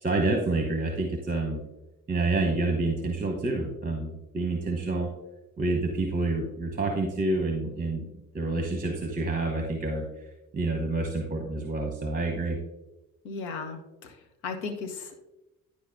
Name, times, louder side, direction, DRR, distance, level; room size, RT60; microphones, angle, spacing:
voice 1, 0.0-1.6 2.1-5.1 5.6-8.1 8.3-10.1 10.5-12.6, right 2 dB, 20° right, 3 dB, 1.0 m, -28 dB
voice 2, 13.2-14.1 14.4-15.2, left 4 dB, 65° left, 6 dB, 1.0 m, -36 dB
10.0 x 4.8 x 2.7 m, 0.99 s
figure-of-eight pair, 45°, 45 cm